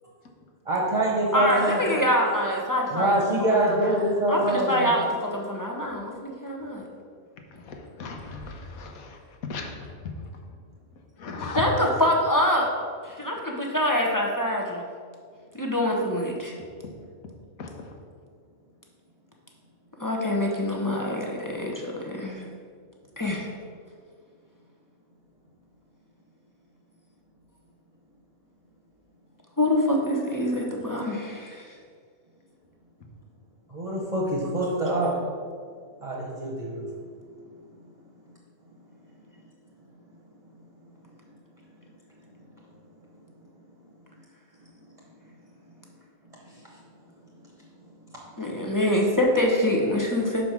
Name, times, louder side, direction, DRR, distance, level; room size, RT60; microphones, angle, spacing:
voice 1, 0.7-2.1 2.9-4.9 33.7-35.2 36.0-36.8 46.5-46.6, right 1 dB, 25° right, -4 dB, 1.0 m, -25 dB
voice 2, 1.3-3.2 3.8-3.9 4.3-6.9 11.5-12.7 13.0-14.8 15.5-16.5 20.0-22.4 23.2-23.5 29.6-31.7 48.4-50.5, left 1 dB, 20° left, -1 dB, 0.6 m, -25 dB
voice 3, 7.5-9.9 11.2-11.6 17.6-17.9, left 4 dB, 85° left, 3 dB, 1.4 m, -37 dB
5.9 x 5.0 x 6.0 m, 2.1 s
omnidirectional pair, 1.5 m